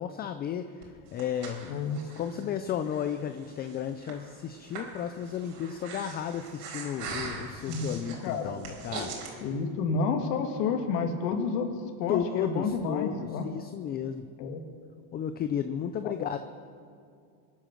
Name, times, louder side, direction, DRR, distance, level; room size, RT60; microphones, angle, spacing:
voice 1, 0.0-9.1 12.1-14.3 15.1-16.4, left 9 dB, 20° left, 9 dB, 0.3 m, -33 dB
Breathing, 0.8-9.3, right 4 dB, 80° right, 4.5 m, -42 dB
voice 2, 1.7-2.0 7.7-8.6 9.4-11.7 12.0-13.4 14.4-14.6 16.0-16.3, left 5 dB, 75° left, 4 dB, 2.4 m, -30 dB
23.5 x 9.2 x 6.3 m, 2.3 s
supercardioid pair, 135°, 48 cm